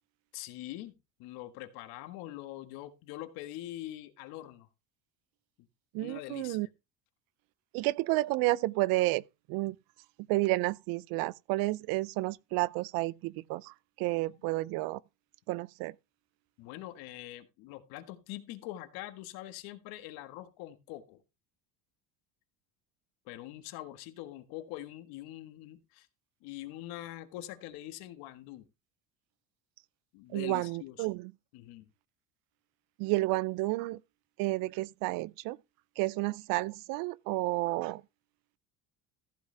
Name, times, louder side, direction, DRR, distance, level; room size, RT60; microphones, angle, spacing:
voice 1, 0.3-0.9 1.2-4.7 6.0-6.6 16.6-21.2 23.3-26.1 26.4-28.7 30.1-31.1 31.5-31.9, left 15 dB, 75° left, 1.7 m, -44 dB
voice 2, 5.9-6.7 7.7-9.2 9.5-9.8 10.3-15.0 15.5-15.9 30.3-31.3 33.0-34.0 34.4-35.6 36.0-38.0, right 20 dB, 65° right, 0.5 m, -31 dB
14.5 x 8.2 x 3.4 m
cardioid pair, 160°, 37 cm